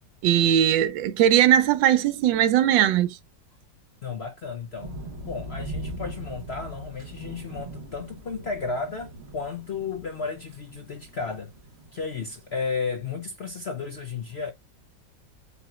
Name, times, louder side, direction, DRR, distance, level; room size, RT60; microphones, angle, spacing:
voice 1, 0.2-3.2, right 11 dB, 85° right, 1.3 m, -19 dB
voice 2, 4.0-5.0 5.2-11.5 11.9-14.5, left 5 dB, 60° left, 0.6 m, -33 dB
sound 1, 4.8-12.7, right 1 dB, 40° right, 1.3 m, -40 dB
8.1 x 2.8 x 2.3 m
omnidirectional pair, 2.0 m